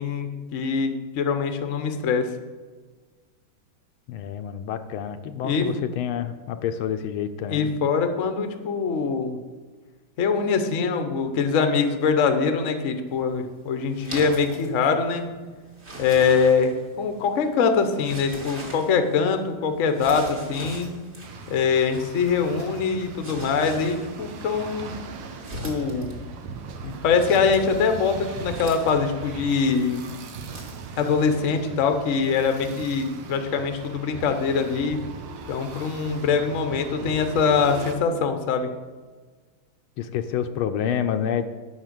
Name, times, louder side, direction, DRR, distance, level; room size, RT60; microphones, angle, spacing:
voice 1, 0.0-2.3 5.4-5.7 7.5-9.4 10.2-15.3 16.0-20.9 21.5-24.9 25.6-26.2 26.8-30.2 31.0-35.0 35.5-38.7, left 5 dB, 55° left, 7 dB, 0.9 m, -23 dB
voice 2, 4.1-7.7 40.0-41.4, left 8 dB, 75° left, 8 dB, 1.4 m, -28 dB
sound 1, 13.1-30.8, right 1 dB, 35° right, 1.7 m, -42 dB
sound 2, 21.2-37.9, right 5 dB, 75° right, 1.8 m, -39 dB
8.8 x 5.8 x 7.6 m, 1.4 s
omnidirectional pair, 2.4 m